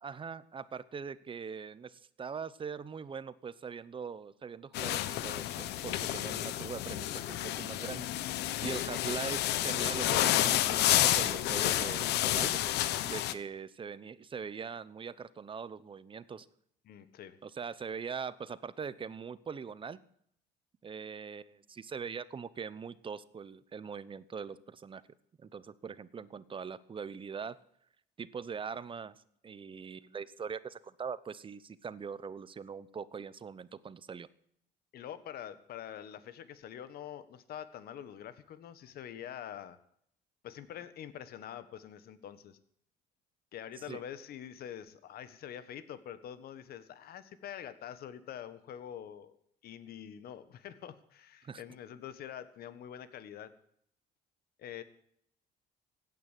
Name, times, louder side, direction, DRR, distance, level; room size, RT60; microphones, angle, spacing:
voice 1, 0.0-12.6 13.0-16.5 17.4-20.0 20.8-25.0 25.4-27.6 28.2-29.1 29.4-34.3 43.9-44.0 51.4-51.6, right 6 dB, 30° right, 17 dB, 0.9 m, -42 dB
sound 1, 4.7-13.3, left 13 dB, 80° left, 1.0 m, -30 dB
voice 2, 16.8-17.4 34.9-39.8 40.4-42.6 43.5-49.4 49.6-53.5 54.6-54.8, left 10 dB, 65° left, 13 dB, 1.5 m, -45 dB
16.5 x 9.5 x 8.4 m, 0.69 s
cardioid pair, 110°, 17 cm